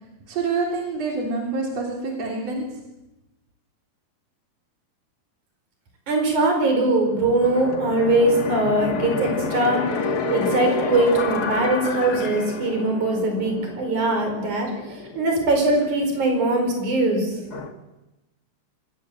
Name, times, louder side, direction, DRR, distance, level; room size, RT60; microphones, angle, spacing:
voice 1, 0.3-2.6, right 3 dB, 60° right, 0 dB, 4.5 m, -26 dB
voice 2, 6.1-9.8 10.3-14.7 15.2-17.3, right 2 dB, 85° right, 3 dB, 6.2 m, -21 dB
sound 1, 7.1-17.7, left 4 dB, 40° left, 1.6 m, -30 dB
25.0 x 18.0 x 7.7 m, 0.98 s
omnidirectional pair, 3.4 m